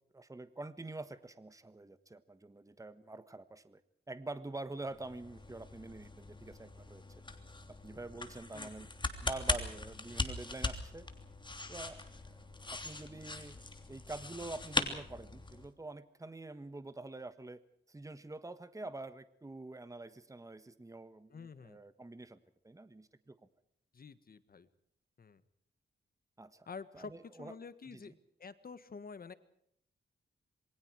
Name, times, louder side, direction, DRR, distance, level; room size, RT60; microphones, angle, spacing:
voice 1, 0.1-3.8 4.1-7.0 7.7-8.9 9.2-11.1 11.7-13.6 13.9-17.6 17.9-23.4 26.4-26.7 26.9-27.5 27.9-28.1, right 2 dB, 15° right, 12 dB, 1.4 m, -46 dB
sound 1, 4.9-15.7, left 2 dB, 25° left, 3.1 m, -40 dB
voice 2, 8.5-8.9 21.3-21.8 23.9-24.7 25.2-25.4 26.7-27.1 27.4-28.1 28.4-29.3, left 5 dB, 50° left, 13 dB, 1.6 m, -48 dB
27.5 x 23.0 x 4.8 m, 0.70 s
wide cardioid pair, 100°, 19 cm